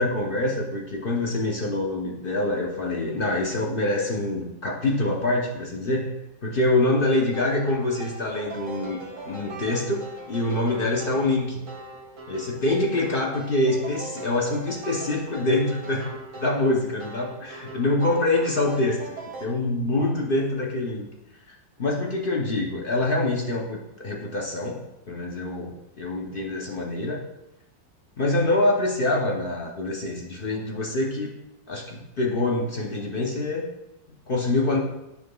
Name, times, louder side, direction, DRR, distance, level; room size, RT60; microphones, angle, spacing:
voice 1, 0.0-6.1 6.4-11.6 12.3-16.1 16.4-21.1 21.8-24.8 25.1-27.2 28.2-31.3 31.7-33.6 34.3-34.8, left 2 dB, 60° left, -1 dB, 0.5 m, -25 dB
sound 1, 7.0-19.5, right 2 dB, 70° right, 2.3 m, -41 dB
9.7 x 6.5 x 2.3 m, 0.91 s
omnidirectional pair, 2.0 m